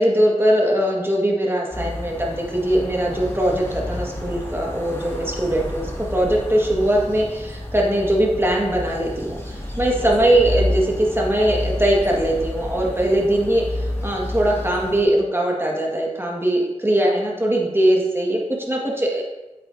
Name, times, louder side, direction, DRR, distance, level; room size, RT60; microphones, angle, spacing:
voice 1, 0.0-19.2, right 1 dB, 20° right, -2 dB, 1.8 m, -21 dB
sound 1, 1.7-15.0, left 1 dB, 20° left, 2.2 m, -30 dB
8.4 x 8.2 x 2.8 m, 1.1 s
wide cardioid pair, 50°, 13 cm